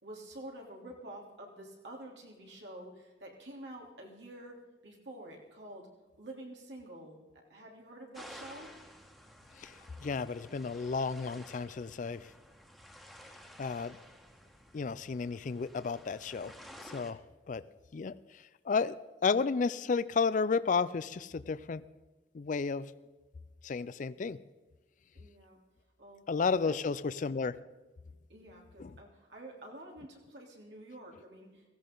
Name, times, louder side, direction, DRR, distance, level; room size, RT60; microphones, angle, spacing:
voice 1, 0.0-5.9 6.2-7.2 7.5-8.7 25.1-25.6 26.0-26.3 26.6-27.0 28.3-31.7, right 1 dB, 90° right, -1 dB, 3.4 m, -48 dB
sound 1, 8.1-17.1, equal, ahead, 1.5 m, -53 dB
voice 2, 10.0-12.3 13.6-14.0 14.7-16.5 16.8-17.2 17.5-17.6 17.9-18.9 19.2-21.8 22.3-22.9 23.6-24.4 26.3-27.6 28.8-28.9, left 5 dB, 45° left, 16 dB, 0.4 m, -32 dB
16.5 x 15.5 x 3.9 m, 1.3 s
head